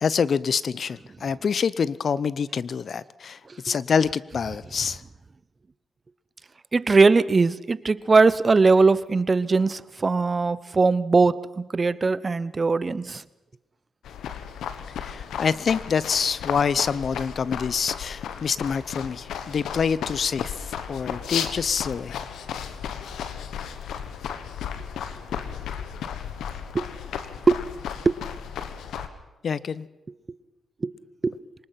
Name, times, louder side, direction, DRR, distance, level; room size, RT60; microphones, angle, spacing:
voice 1, 0.0-5.0 15.0-22.1 29.4-29.9, left 6 dB, 60° left, 19 dB, 0.7 m, -26 dB
voice 2, 6.7-13.2 27.5-27.6 28.0-28.1 30.8-30.9 31.2-31.3, right 4 dB, 40° right, 18 dB, 0.9 m, -20 dB
sound 1, 14.0-29.1, left 8 dB, 85° left, 1.4 m, -34 dB
24.0 x 20.0 x 5.9 m, 1.0 s
cardioid pair, 60°, 0 cm